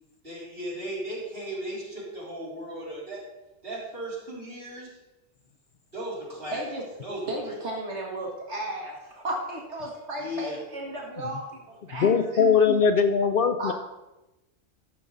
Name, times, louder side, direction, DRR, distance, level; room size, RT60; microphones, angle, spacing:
voice 1, 0.2-3.2 3.6-5.0 5.9-6.6 7.0-7.6 10.2-10.6, equal, 50° right, -6 dB, 3.9 m, -36 dB
voice 2, 6.5-6.8 7.3-12.4 13.6-13.7, right 1 dB, 70° right, -1 dB, 1.8 m, -34 dB
voice 3, 12.0-13.7, left 6 dB, 60° left, 8 dB, 0.7 m, -21 dB
13.5 x 6.2 x 4.0 m, 0.99 s
omnidirectional pair, 1.2 m